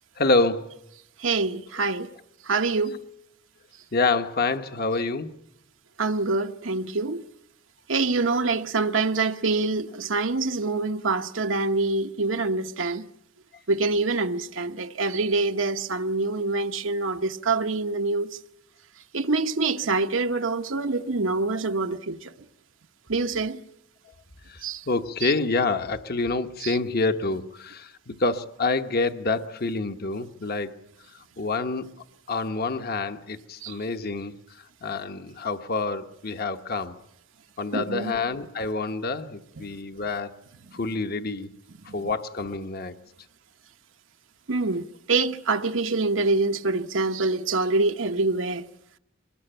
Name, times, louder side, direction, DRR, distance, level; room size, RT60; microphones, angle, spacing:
voice 1, 0.2-0.7 3.9-5.3 24.5-30.7 31.4-31.8 32.3-37.0 37.6-40.3 40.7-41.5 41.9-42.9, left 3 dB, 55° left, 1.1 m, -27 dB
voice 2, 1.2-2.1 2.5-3.0 6.0-7.2 7.9-13.0 13.7-18.3 19.1-22.3 23.1-23.6 24.6-24.8 25.2-25.3 26.6-26.8 33.6-33.7 37.7-38.1 44.5-48.6, right 3 dB, 85° right, 1.0 m, -25 dB
23.5 x 20.0 x 9.0 m
head